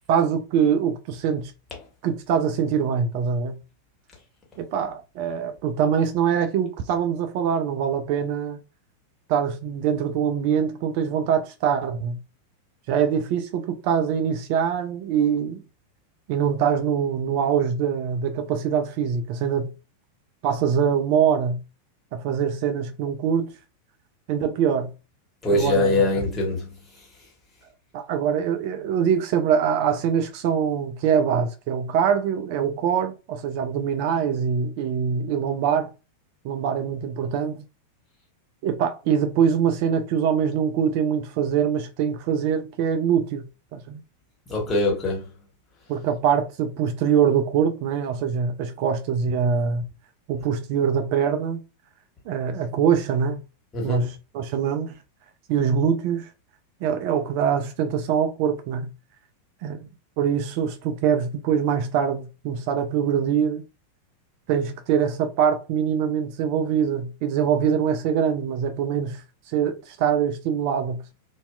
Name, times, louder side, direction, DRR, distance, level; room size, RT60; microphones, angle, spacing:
voice 1, 0.1-1.5 2.0-3.5 4.6-8.6 9.3-12.2 12.9-15.6 16.3-19.7 20.4-21.6 22.1-23.5 24.3-24.9 25.5-26.1 27.9-35.9 36.4-37.7 38.6-43.4 43.7-44.0 45.9-49.8 50.3-51.6 52.3-53.4 53.8-55.0 55.5-56.3 56.8-58.9 59.6-59.9 60.2-63.6 64.5-69.2 69.5-71.1, right 7 dB, 45° right, 0.3 m, -23 dB
voice 2, 25.4-26.7 44.5-45.3 53.7-54.1, left 2 dB, 20° left, 1.2 m, -23 dB
2.7 x 2.2 x 2.2 m
figure-of-eight pair, 90°, 0 cm